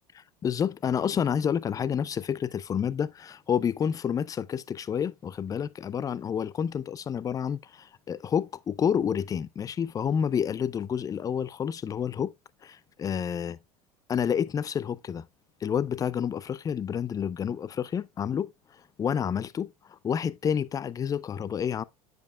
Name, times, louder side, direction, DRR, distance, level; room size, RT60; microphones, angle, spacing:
voice 1, 0.4-12.3 12.6-13.6 14.1-15.3 15.6-18.5 19.0-21.8, left 8 dB, 20° left, 0.4 m, -29 dB
10.0 x 5.2 x 2.3 m
figure-of-eight pair, 80°, 19 cm